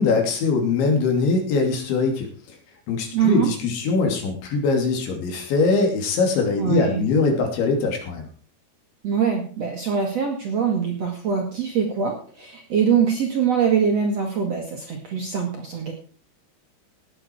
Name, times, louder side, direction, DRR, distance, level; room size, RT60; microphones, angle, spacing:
voice 1, 0.0-2.6 2.9-8.3, left 4 dB, 85° left, 3 dB, 5.2 m, -22 dB
voice 2, 3.1-3.5 6.6-7.0 9.0-15.9, right 7 dB, 55° right, 1 dB, 1.9 m, -23 dB
18.5 x 8.2 x 4.6 m, 0.41 s
omnidirectional pair, 5.1 m